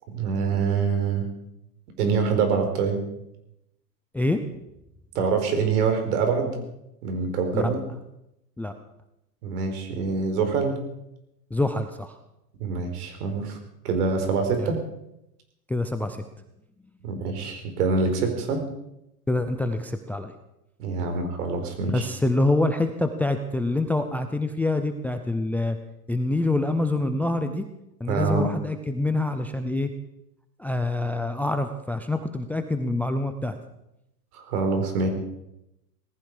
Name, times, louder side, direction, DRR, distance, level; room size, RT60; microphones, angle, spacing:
voice 1, 0.1-1.3 2.0-3.0 5.1-6.6 7.0-7.8 9.4-10.8 12.6-13.6 13.8-14.8 17.0-18.6 20.8-22.1 28.1-28.5 34.3-35.1, right 5 dB, 65° right, 5 dB, 4.7 m, -25 dB
voice 2, 11.5-12.2 14.6-14.7 15.7-16.2 19.3-20.3 21.0-21.2 21.9-25.8 26.1-27.7 28.0-29.9 30.6-33.6, left 2 dB, 5° left, 8 dB, 0.6 m, -26 dB
19.0 x 15.0 x 5.0 m, 0.85 s
hypercardioid pair, 125°, 49 cm